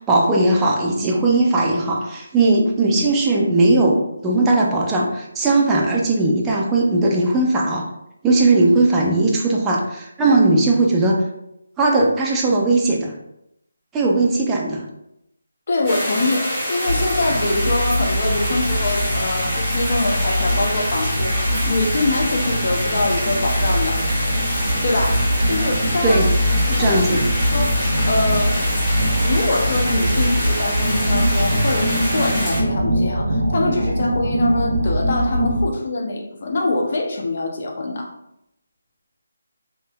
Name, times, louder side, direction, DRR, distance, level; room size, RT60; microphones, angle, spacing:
voice 1, 0.0-7.8 8.2-11.2 11.8-13.1 13.9-14.8 26.0-26.3 26.7-27.2, right 2 dB, 10° right, -3 dB, 0.4 m, -18 dB
voice 2, 15.7-24.0 24.8-26.2 26.7-27.0 27.5-27.8 28.0-28.6 29.2-38.1, left 2 dB, 45° left, 1 dB, 0.6 m, -24 dB
sound 1, 15.8-32.6, equal, 10° left, 1.2 m, -26 dB
sound 2, 16.9-35.7, equal, 85° right, 0.6 m, -22 dB
3.1 x 2.8 x 2.2 m, 0.82 s
figure-of-eight pair, 165°, 0 cm